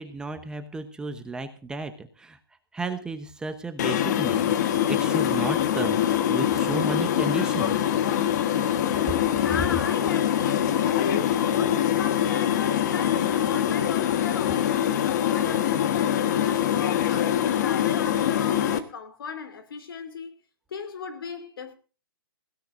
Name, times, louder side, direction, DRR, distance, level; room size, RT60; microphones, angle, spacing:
voice 1, 0.0-2.4 2.7-6.0 6.3-7.9, right 3 dB, 5° right, 1.0 m, -33 dB
sound 1, 3.8-18.8, left 10 dB, 50° left, 1.4 m, -24 dB
voice 2, 9.4-20.3 20.7-21.7, left 5 dB, 70° left, 2.9 m, -36 dB
20.5 x 16.5 x 2.6 m
hypercardioid pair, 150°, 12 cm